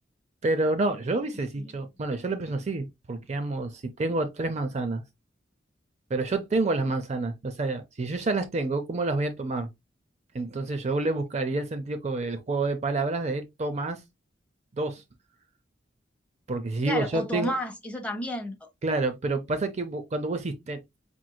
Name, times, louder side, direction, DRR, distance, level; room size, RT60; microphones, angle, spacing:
voice 1, 0.4-5.0 6.1-9.7 10.3-14.0 14.8-15.0 16.5-17.5 18.8-20.8, right 2 dB, 35° right, 0.5 m, -28 dB
voice 2, 16.9-18.7, left 1 dB, 5° left, 0.9 m, -32 dB
5.1 x 3.0 x 2.2 m
head